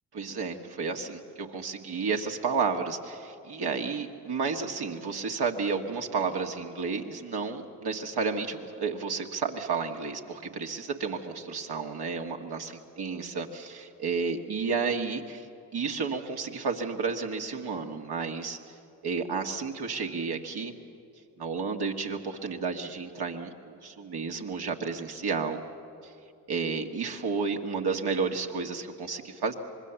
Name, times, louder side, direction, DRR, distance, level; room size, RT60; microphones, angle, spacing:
voice 1, 0.1-12.7 13.0-15.5 15.7-18.6 19.0-20.7 21.4-25.6 26.0-26.1 26.5-29.5, right 5 dB, 60° right, 2 dB, 2.0 m, -31 dB
25.0 x 21.0 x 7.1 m, 2.5 s
hypercardioid pair, 45°, 44 cm